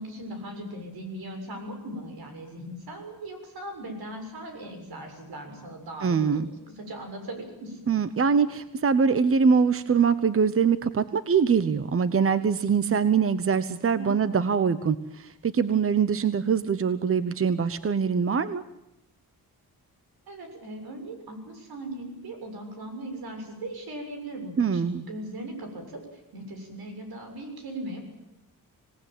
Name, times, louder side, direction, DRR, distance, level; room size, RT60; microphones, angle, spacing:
voice 1, 0.0-6.4 6.8-7.9 14.0-14.3 20.3-26.0 26.3-28.0, right 1 dB, 85° right, 4 dB, 7.1 m, -39 dB
voice 2, 6.0-6.5 7.9-18.6 24.6-25.0, right 6 dB, 40° right, 13 dB, 1.0 m, -23 dB
26.0 x 18.5 x 9.2 m, 0.88 s
wide cardioid pair, 140°, 36 cm